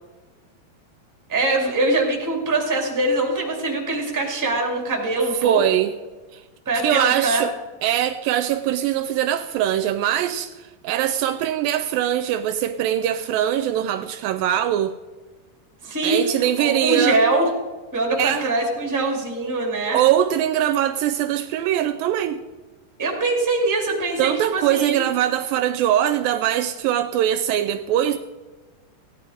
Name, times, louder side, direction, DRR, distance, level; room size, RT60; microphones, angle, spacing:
voice 1, 1.3-5.6 6.6-7.4 15.8-17.5 17.9-20.0 23.0-25.0, right 2 dB, 5° right, 0 dB, 1.6 m, -23 dB
voice 2, 5.4-5.9 6.3-6.4 6.8-7.5 7.8-14.9 16.0-17.2 18.2-18.5 19.9-22.4 24.2-28.2, right 11 dB, 80° right, 11 dB, 2.2 m, -22 dB
16.0 x 10.0 x 4.9 m, 1.3 s
omnidirectional pair, 4.3 m